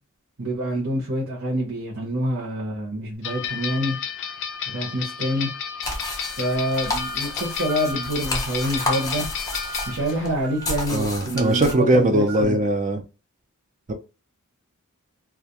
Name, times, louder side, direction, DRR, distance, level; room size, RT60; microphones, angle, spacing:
voice 1, 0.4-4.0 4.7-5.5 6.4-9.2 9.9-12.7, equal, 60° right, 0.8 m, -26 dB
sound 1, 3.2-10.3, left 7 dB, 55° left, 0.4 m, -32 dB
sound 2, 5.8-11.7, left 2 dB, 15° left, 0.6 m, -31 dB
sound 3, 6.4-12.4, right 5 dB, 75° right, 1.1 m, -41 dB
voice 2, 10.9-13.0 13.9-14.0, right 1 dB, 35° right, 0.4 m, -20 dB
2.3 x 2.1 x 2.7 m
head